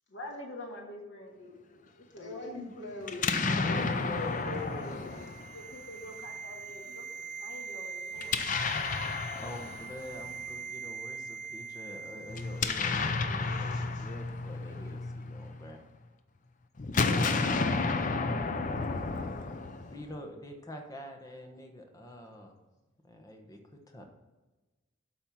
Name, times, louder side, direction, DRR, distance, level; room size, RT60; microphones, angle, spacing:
voice 1, 0.1-2.6 3.6-8.5 16.9-19.3, left 2 dB, 75° left, -1 dB, 1.7 m, -46 dB
voice 2, 2.2-5.3 13.7-13.8, left 2 dB, 60° left, -2 dB, 2.4 m, -41 dB
Explosion, 3.0-6.1 8.2-10.4 12.3-15.7 16.8-20.2, left 4 dB, 40° left, 0.6 m, -32 dB
sound 1, 3.6-12.9 13.1-13.3, right 5 dB, 60° right, 3.0 m, -43 dB
voice 3, 9.4-15.8 19.9-22.5 23.0-24.0, equal, 15° left, 3 dB, 1.1 m, -46 dB
12.0 x 4.3 x 5.8 m, 1.2 s
head